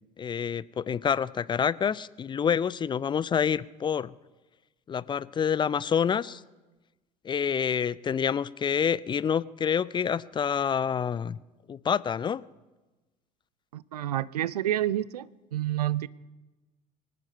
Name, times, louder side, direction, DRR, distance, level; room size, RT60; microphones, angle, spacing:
voice 1, 0.2-4.1 4.9-6.4 7.2-11.4 11.7-12.4, left 7 dB, 25° left, 0.4 m, -27 dB
voice 2, 13.7-16.1, right 12 dB, 80° right, 0.4 m, -29 dB
24.5 x 9.4 x 5.4 m
figure-of-eight pair, 60°, 20 cm